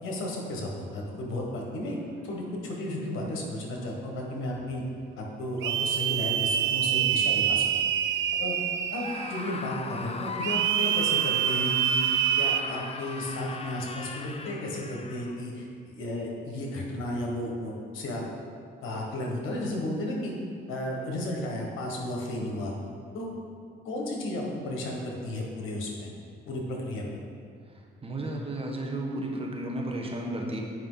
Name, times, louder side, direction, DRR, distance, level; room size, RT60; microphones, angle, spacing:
voice 1, 0.0-4.8 5.2-7.7 8.3-8.6 8.9-12.0 12.4-18.2 18.8-20.3 20.7-22.7 23.1-23.3 23.8-26.1 26.5-27.2, left 1 dB, 85° left, -1 dB, 1.4 m, -33 dB
sound 1, 5.6-9.5 10.4-12.6, right 10 dB, 70° right, 0.4 m, -26 dB
Screaming, 8.9-15.4, left 3 dB, 30° left, 0.6 m, -39 dB
voice 2, 28.0-30.6, right 1 dB, 30° right, 0 dB, 1.2 m, -33 dB
8.8 x 5.3 x 3.9 m, 2.3 s
cardioid pair, 90°, 20 cm